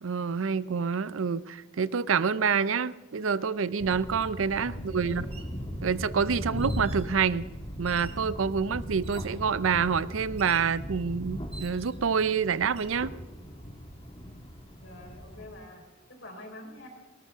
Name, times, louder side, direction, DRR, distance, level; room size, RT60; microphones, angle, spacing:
voice 1, 0.0-5.3 5.8-7.5 7.8-13.1, right 6 dB, 90° right, 18 dB, 0.5 m, -27 dB
sound 1, 3.8-15.6, equal, 30° left, 2.0 m, -38 dB
sound 2, 4.2-4.3 5.2-5.6 6.6-7.1 7.9-8.3 9.0-9.5 10.4-10.7 11.5-12.1 12.6-13.0, right 5 dB, 30° right, 1.5 m, -49 dB
voice 2, 4.8-5.3 14.8-15.8 16.1-16.9, left 1 dB, 70° left, 1 dB, 4.3 m, -46 dB
19.5 x 19.0 x 3.6 m, 1.2 s
head